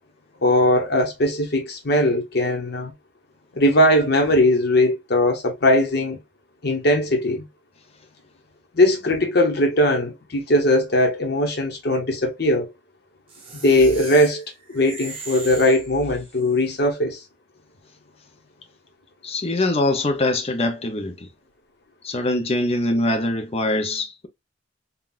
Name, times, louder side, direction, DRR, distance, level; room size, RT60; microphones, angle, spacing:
voice 1, 0.4-2.9 3.5-6.2 6.6-7.4 8.7-12.7 13.5-14.4 14.7-17.2, left 1 dB, 60° left, 1.0 m, -19 dB
sound 1, 13.3-16.5, right 3 dB, 30° right, 0.9 m, -38 dB
voice 2, 19.2-21.1 22.0-24.3, left 2 dB, 35° left, 0.6 m, -23 dB
3.8 x 2.3 x 2.4 m
head